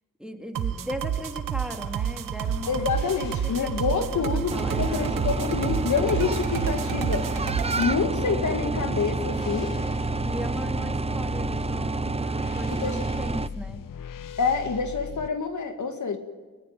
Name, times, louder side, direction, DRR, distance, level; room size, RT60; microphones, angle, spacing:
voice 1, 0.2-5.1 10.2-13.8, equal, ahead, 3 dB, 3.4 m, -38 dB
sound 1, 0.6-7.9, right 9 dB, 85° right, 1.3 m, -30 dB
sound 2, 2.5-15.3, left 8 dB, 90° left, 1.0 m, -39 dB
voice 2, 2.7-7.3 7.8-9.8 12.7-13.0 14.4-16.2, left 5 dB, 65° left, 6 dB, 2.2 m, -27 dB
sound 3, 4.5-13.5, right 3 dB, 20° right, 0.6 m, -29 dB
21.5 x 19.0 x 9.0 m, 1.4 s
cardioid pair, 70°, 32 cm